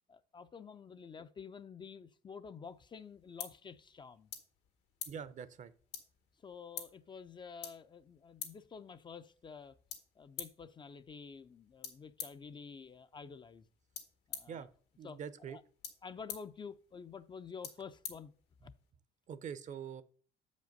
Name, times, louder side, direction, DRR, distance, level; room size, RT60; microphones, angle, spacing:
voice 1, 0.1-4.3 6.4-9.8 10.2-13.7 14.3-14.7 15.0-15.2 15.4-15.6 16.0-18.3 18.6-18.7, left 6 dB, 30° left, 0.4 m, -49 dB
sound 1, 2.6-18.9, left 8 dB, 85° left, 1.7 m, -51 dB
voice 2, 5.1-5.7 14.5-14.7 15.0-15.6 19.3-20.0, right 7 dB, 45° right, 0.6 m, -44 dB
7.3 x 5.2 x 5.3 m
cardioid pair, 110°, 17 cm